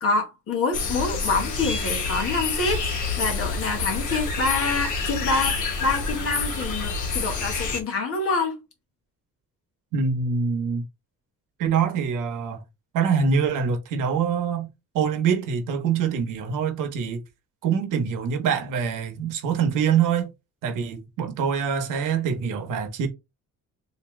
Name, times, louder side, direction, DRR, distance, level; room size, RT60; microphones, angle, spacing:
voice 1, 0.0-8.6, left 3 dB, 45° left, 1.1 m, -26 dB
sound 1, 0.7-7.8, left 4 dB, 70° left, 1.2 m, -28 dB
voice 2, 9.9-10.8 11.6-12.6 12.9-14.7 14.9-17.2 17.6-20.3 20.6-23.1, right 6 dB, 85° right, 1.0 m, -24 dB
3.5 x 2.8 x 3.1 m
cardioid pair, 175°, 31 cm